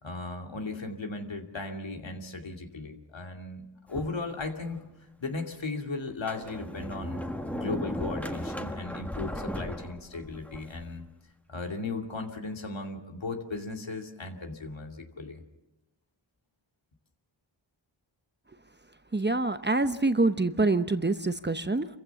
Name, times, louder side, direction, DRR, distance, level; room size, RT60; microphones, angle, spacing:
voice 1, 0.0-4.8 5.2-7.2 7.5-11.1 11.5-15.4, left 3 dB, 70° left, 3 dB, 2.6 m, -36 dB
Sliding door, 3.9-4.8 5.4-5.5 6.1-10.9, equal, 5° left, 1.6 m, -36 dB
voice 2, 19.1-22.0, right 2 dB, 25° right, 10 dB, 0.9 m, -26 dB
27.5 x 15.5 x 7.1 m, 0.97 s
wide cardioid pair, 60°, 46 cm